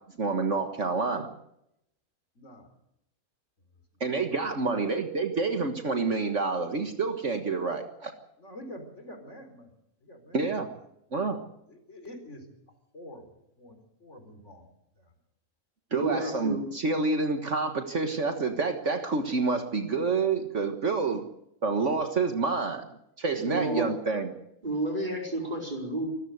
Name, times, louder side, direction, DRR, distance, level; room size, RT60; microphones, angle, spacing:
voice 1, 0.2-1.3 4.0-8.1 10.3-10.7 11.1-11.4 15.9-21.2 21.6-22.8 23.2-24.3, right 4 dB, 55° right, 6 dB, 1.8 m, -28 dB
voice 2, 2.3-2.7 4.5-4.9 8.4-9.7 10.0-10.5 11.7-12.5 12.9-14.7 15.0-15.1 16.1-16.4 23.3-23.9, equal, 55° left, 6 dB, 4.4 m, -44 dB
voice 3, 15.9-16.7 21.1-21.2 23.4-23.9 24.6-26.1, right 2 dB, 30° right, 0 dB, 5.1 m, -31 dB
25.5 x 14.5 x 8.1 m, 0.80 s
omnidirectional pair, 1.5 m